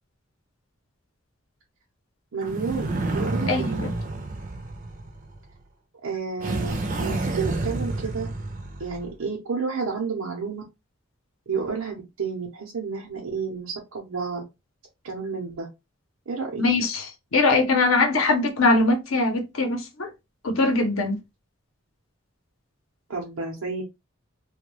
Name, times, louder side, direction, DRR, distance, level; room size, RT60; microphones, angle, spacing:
voice 1, 2.3-3.8 6.0-8.3 8.8-10.6 11.5-14.4 15.0-15.7 16.3-16.6 23.1-23.8, right 5 dB, 90° right, 0.7 m, -31 dB
sound 1, 2.4-5.5 6.4-9.1, right 2 dB, 40° right, 0.4 m, -29 dB
voice 2, 3.5-3.9 16.6-17.1 17.3-20.1 20.4-21.2, left 3 dB, 80° left, 0.7 m, -21 dB
2.2 x 2.2 x 3.0 m
head